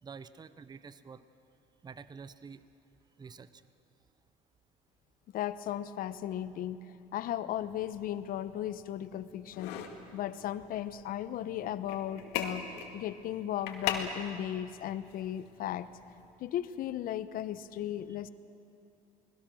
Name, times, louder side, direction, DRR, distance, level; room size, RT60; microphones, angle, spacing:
voice 1, 0.0-1.2 1.8-2.6 3.2-3.6, right 5 dB, 25° right, 14 dB, 0.8 m, -48 dB
voice 2, 5.3-6.8 7.1-9.7 10.1-12.6 12.9-15.9 16.4-18.3, left 11 dB, 60° left, 13 dB, 1.0 m, -36 dB
sound 1, 7.5-16.3, left 8 dB, 85° left, 2.3 m, -42 dB
29.5 x 20.0 x 6.3 m, 2.6 s
supercardioid pair, 100°, 17 cm